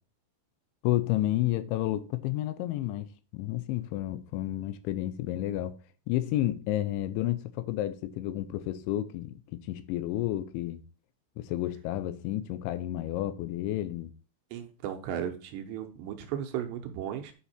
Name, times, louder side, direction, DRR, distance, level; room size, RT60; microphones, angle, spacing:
voice 1, 0.8-5.8 6.1-10.8 11.4-14.1, left 14 dB, 85° left, 3.1 m, -31 dB
voice 2, 14.5-17.3, right 10 dB, 75° right, 3.0 m, -35 dB
9.6 x 5.8 x 4.3 m
omnidirectional pair, 5.4 m